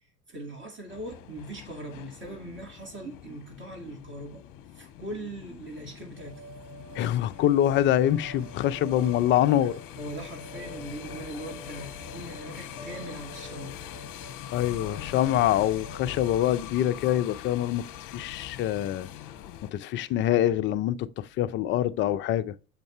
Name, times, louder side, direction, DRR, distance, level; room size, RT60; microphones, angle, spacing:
voice 1, 0.3-4.5 4.8-6.4 10.0-13.7, right 1 dB, 25° right, 2.1 m, -40 dB
sound 1, 0.9-19.7, left 11 dB, 45° left, 0.9 m, -43 dB
sound 2, 6.2-16.3, right 6 dB, 70° right, 1.4 m, -50 dB
voice 2, 6.9-9.8 14.5-19.1 19.6-22.5, left 12 dB, 30° left, 0.4 m, -25 dB
sound 3, 8.8-14.6, left 3 dB, 5° right, 2.9 m, -48 dB
7.3 x 5.3 x 3.1 m
hypercardioid pair, 90°, 45 cm